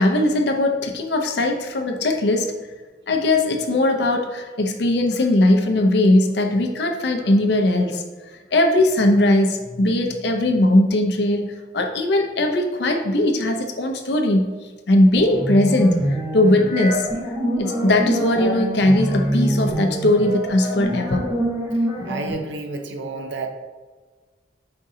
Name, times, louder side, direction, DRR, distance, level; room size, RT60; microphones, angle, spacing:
voice 1, 0.0-2.5 3.1-8.0 8.5-14.5 14.9-16.1 16.3-17.1 17.6-21.3, left 1 dB, 65° left, 4 dB, 0.6 m, -19 dB
sound 1, 15.1-22.3, equal, 20° right, 0.9 m, -25 dB
voice 2, 22.1-23.5, right 3 dB, 75° right, 4 dB, 0.6 m, -30 dB
5.2 x 3.7 x 2.7 m, 1.4 s
head